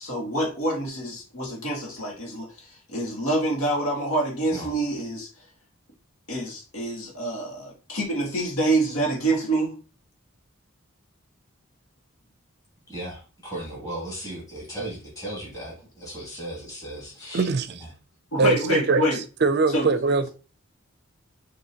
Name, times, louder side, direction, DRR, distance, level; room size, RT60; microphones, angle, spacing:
voice 1, 0.0-5.3 6.3-9.7 18.3-19.2 19.7-19.9, right 1 dB, 80° left, 1.7 m, -26 dB
voice 2, 12.9-17.5 17.8-17.9, right 1 dB, 15° left, 2.4 m, -36 dB
voice 3, 17.3-17.7 18.4-19.0 19.4-20.3, right 3 dB, 50° right, 0.4 m, -21 dB
6.3 x 2.9 x 2.8 m
head